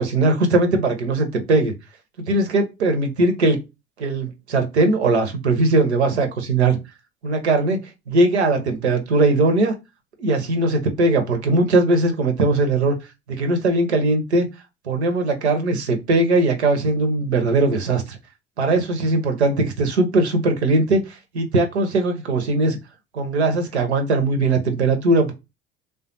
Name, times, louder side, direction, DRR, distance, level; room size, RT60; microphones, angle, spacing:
voice 1, 0.0-1.7 2.2-3.6 4.0-6.8 7.2-7.8 8.1-9.7 10.2-13.0 13.3-14.5 14.9-18.2 18.6-22.8 23.1-25.3, right 2 dB, 85° right, 0.7 m, -20 dB
3.4 x 2.2 x 2.6 m
figure-of-eight pair, 60°, 32 cm